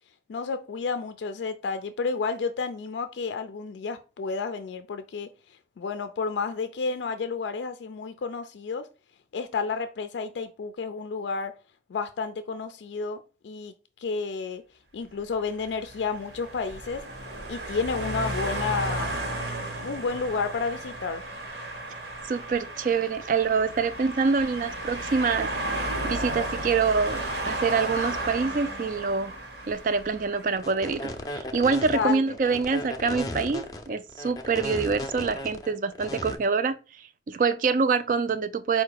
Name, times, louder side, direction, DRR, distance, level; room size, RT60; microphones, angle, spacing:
voice 1, 0.3-5.3 5.8-8.9 9.3-11.5 11.9-13.7 14.0-14.6 14.9-17.0 17.5-19.1 19.8-21.2 31.9-32.4, left 5 dB, 85° left, 0.4 m, -31 dB
sound 1, 15.5-30.9, right 1 dB, 75° right, 1.1 m, -34 dB
voice 2, 22.2-25.5 26.0-29.3 29.7-38.8, right 5 dB, 45° right, 0.3 m, -26 dB
sound 2, 30.6-36.3, left 1 dB, 20° left, 0.4 m, -36 dB
4.8 x 2.2 x 4.6 m
head